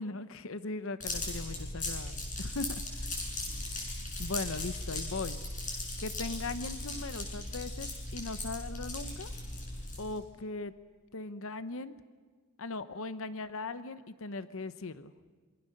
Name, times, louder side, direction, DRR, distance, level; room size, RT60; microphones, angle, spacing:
voice 1, 0.0-2.7 4.2-5.4 6.0-9.3 10.0-10.7 11.1-11.9 12.6-15.1, left 3 dB, 70° left, 12 dB, 0.8 m, -39 dB
sound 1, 1.0-10.2, left 2 dB, 40° left, 7.6 m, -38 dB
27.5 x 23.5 x 6.6 m, 1.5 s
head